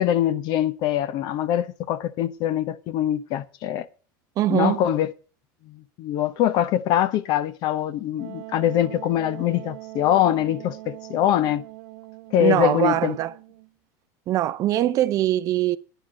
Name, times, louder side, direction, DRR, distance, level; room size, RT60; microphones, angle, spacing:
voice 1, 0.0-3.9 4.5-5.1 5.7-11.7 12.3-13.2, left 11 dB, 45° left, 0.8 m, -23 dB
voice 2, 4.4-4.8 12.4-13.3 14.3-15.8, right 13 dB, 35° right, 0.6 m, -22 dB
Wind instrument woodwind instrument, 8.2-13.7, right 20 dB, 65° right, 1.1 m, -41 dB
10.0 x 6.0 x 8.8 m
supercardioid pair, 155°, 10 cm